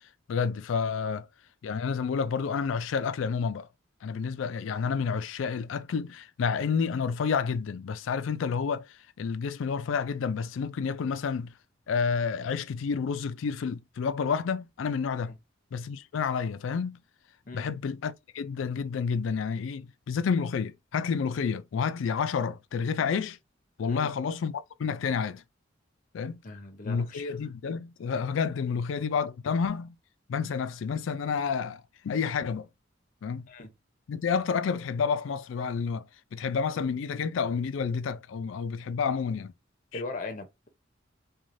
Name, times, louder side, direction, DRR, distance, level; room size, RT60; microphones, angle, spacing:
voice 1, 0.3-1.3 1.6-3.7 4.0-8.9 9.2-11.5 11.9-15.4 15.7-17.0 17.5-23.4 23.8-25.4 26.1-26.4 26.8-30.0 30.3-32.7 33.2-33.5 34.1-36.0 36.3-39.5 39.9-40.0, left 6 dB, 80° left, 0.4 m, -30 dB
voice 2, 26.4-27.4 28.7-28.8 33.5-33.7 39.9-40.7, left 3 dB, 45° left, 0.7 m, -39 dB
3.1 x 2.3 x 2.6 m
head